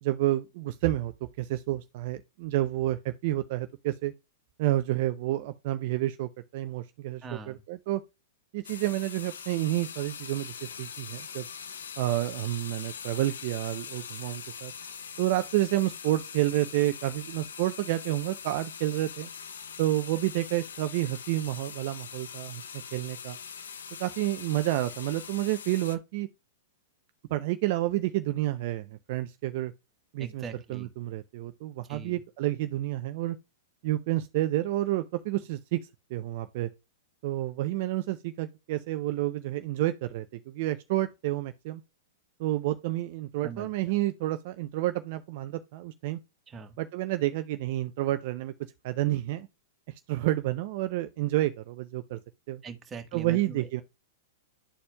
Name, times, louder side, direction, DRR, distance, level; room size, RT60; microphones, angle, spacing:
voice 1, 0.0-1.1 1.4-4.1 4.6-8.0 8.5-11.4 12.0-14.7 15.2-19.3 19.8-22.6 22.9-23.4 24.0-26.3 27.3-29.7 30.1-30.4 30.7-33.4 33.8-35.8 36.1-36.7 37.2-41.8 42.4-46.2 46.8-48.5 48.8-49.5 50.1-52.2 52.5-52.6 53.1-53.8, right 15 dB, 55° right, 0.5 m, -29 dB
voice 2, 7.2-7.6 30.2-30.9 31.9-32.2 43.4-43.7 46.5-46.8 52.6-53.7, right 5 dB, 20° right, 1.4 m, -42 dB
sound 1, 8.6-26.0, left 7 dB, 80° left, 0.8 m, -42 dB
11.0 x 4.3 x 2.3 m
hypercardioid pair, 120°, 0 cm